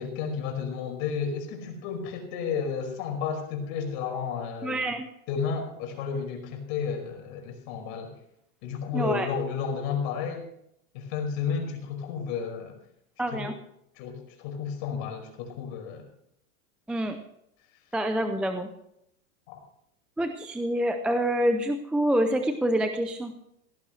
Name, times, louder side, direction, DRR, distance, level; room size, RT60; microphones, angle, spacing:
voice 1, 0.0-4.9 5.3-8.1 8.6-10.4 10.9-12.8 13.3-13.5 14.0-16.0 19.5-19.6, left 6 dB, 45° left, 3 dB, 5.3 m, -32 dB
voice 2, 4.6-5.1 8.9-9.3 13.2-13.5 16.9-17.2 17.9-18.7 20.2-23.3, right 1 dB, 5° right, 6 dB, 0.4 m, -26 dB
17.0 x 15.0 x 3.2 m, 0.76 s
supercardioid pair, 150°, 42 cm